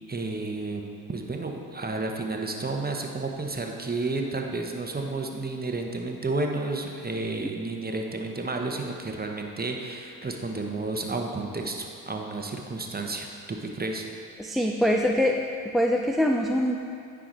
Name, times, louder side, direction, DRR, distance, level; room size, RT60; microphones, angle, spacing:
voice 1, 0.1-0.8 1.1-14.0, right 3 dB, 25° right, 2 dB, 1.1 m, -31 dB
voice 2, 14.4-15.4 15.7-16.8, equal, ahead, 1 dB, 0.5 m, -23 dB
9.8 x 4.9 x 4.0 m, 2.4 s
hypercardioid pair, 40°, 41 cm